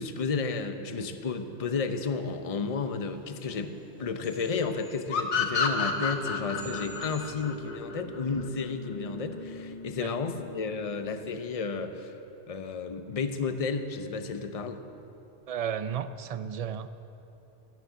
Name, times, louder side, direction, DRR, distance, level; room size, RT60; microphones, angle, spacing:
voice 1, 0.0-12.1 12.5-14.8, left 4 dB, 35° left, 8 dB, 0.7 m, -32 dB
sound 1, 2.2-7.3, equal, 5° right, 3.7 m, -50 dB
sound 2, 5.1-8.5, left 5 dB, 70° left, 1.3 m, -29 dB
sound 3, 5.9-12.0, left 1 dB, 45° right, 2.4 m, -44 dB
voice 2, 15.5-16.9, right 8 dB, 65° right, 12 dB, 0.3 m, -33 dB
12.0 x 10.5 x 8.1 m, 3.0 s
omnidirectional pair, 1.2 m